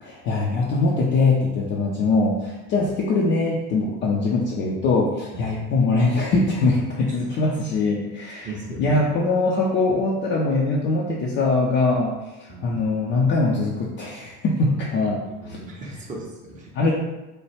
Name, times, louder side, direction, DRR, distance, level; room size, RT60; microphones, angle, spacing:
voice 1, 0.0-8.5 8.8-12.2 12.6-15.6 16.7-16.9, left 3 dB, 30° left, -4 dB, 0.3 m, -22 dB
voice 2, 8.4-9.0 12.5-12.8 15.4-16.7, right 2 dB, 15° right, -1 dB, 0.6 m, -37 dB
3.1 x 2.2 x 2.9 m, 1.0 s
figure-of-eight pair, 65°, 47 cm